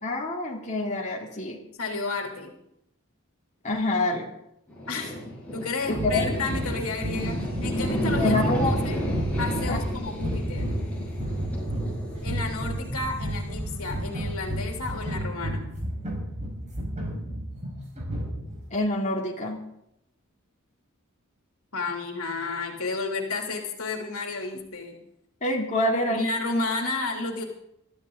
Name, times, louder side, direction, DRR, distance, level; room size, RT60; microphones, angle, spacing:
voice 1, 0.0-1.6 3.6-4.3 5.9-6.3 8.0-8.8 9.7-9.8 18.7-19.6 25.4-26.2, left 1 dB, 35° left, -2 dB, 3.1 m, -26 dB
voice 2, 1.8-2.5 4.9-5.1 5.5-9.0 9.4-10.7 12.2-15.6 21.7-25.0 26.1-27.4, left 3 dB, 75° left, 2 dB, 3.1 m, -32 dB
sound 1, 4.7-15.1, equal, 5° left, 7.5 m, -32 dB
sound 2, 5.9-18.6, right 1 dB, 35° right, 5.4 m, -32 dB
23.0 x 13.5 x 4.0 m, 0.79 s
head